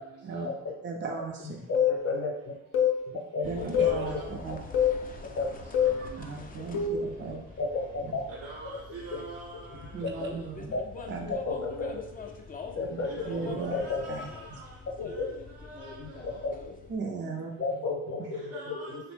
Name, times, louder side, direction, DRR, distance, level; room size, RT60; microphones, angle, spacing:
voice 1, 0.8-1.7 3.4-4.6 6.0-7.4 8.0-8.1 9.9-10.7 11.1-11.3 12.9-13.7 14.1-14.2 16.9-17.7, right 4 dB, 35° right, 2 dB, 0.5 m, -36 dB
sound 1, 1.7-2.0 2.7-3.0 3.7-4.0 4.7-5.0 5.7-6.0 6.7-7.1, left 8 dB, 75° left, 0.6 m, -24 dB
voice 2, 1.7-2.3 3.3-4.2 5.2-5.5 7.6-8.2 9.1-9.2 10.7-10.8 11.3-12.0 12.7-14.0 15.0-15.3 16.0-16.1 16.4-16.5 17.6-19.0, left 3 dB, 45° left, 0 dB, 0.8 m, -32 dB
sound 2, 3.4-17.0, left 3 dB, 25° left, 0.4 m, -44 dB
voice 3, 5.8-6.1 8.3-9.9 10.1-10.3 13.0-14.5 15.7-15.9 18.5-19.1, right 3 dB, 70° right, -5 dB, 0.7 m, -44 dB
2.8 x 2.0 x 3.1 m, 0.82 s
supercardioid pair, 50°, 33 cm